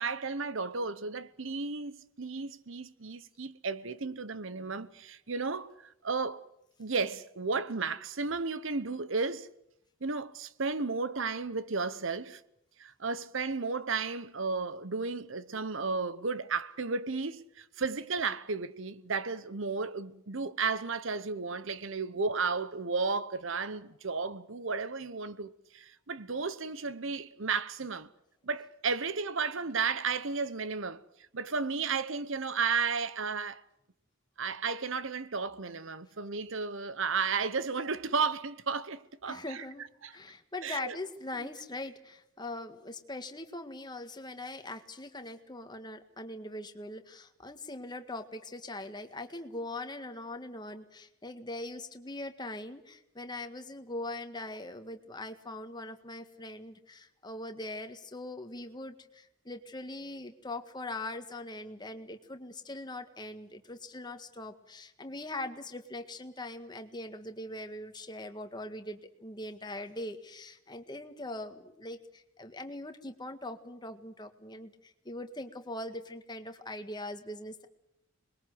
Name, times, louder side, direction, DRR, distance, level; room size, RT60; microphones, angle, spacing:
voice 1, 0.0-6.4 6.8-9.5 10.0-12.4 12.8-28.1 28.4-31.0 31.3-33.6 34.4-39.7 40.0-40.1 40.6-41.0, right 4 dB, 60° right, 1.0 m, -33 dB
voice 2, 39.3-39.9 40.1-77.7, left 2 dB, 20° left, 1.7 m, -41 dB
27.0 x 21.5 x 7.9 m
head